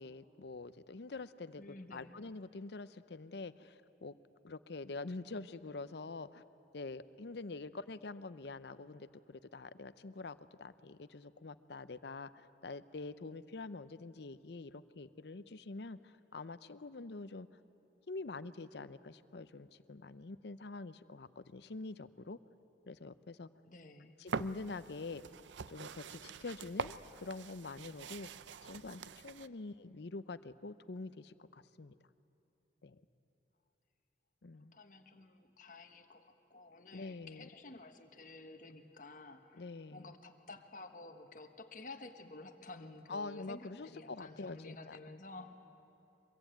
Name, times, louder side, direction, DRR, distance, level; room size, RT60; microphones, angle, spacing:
voice 1, 0.0-4.2 4.4-6.4 6.7-17.5 18.1-22.4 22.9-23.5 24.2-25.2 25.7-26.9 27.2-28.3 28.6-32.0 32.8-33.0 34.4-34.7 36.9-37.5 39.5-40.1 43.1-45.0, left 3 dB, 65° left, 14 dB, 0.6 m, -46 dB
voice 2, 1.6-2.1 23.6-24.2 34.7-45.6, left 2 dB, 45° left, 6 dB, 1.4 m, -52 dB
sound 1, 24.3-29.5, right 5 dB, 80° right, 0.5 m, -44 dB
23.5 x 22.5 x 9.1 m, 2.9 s
head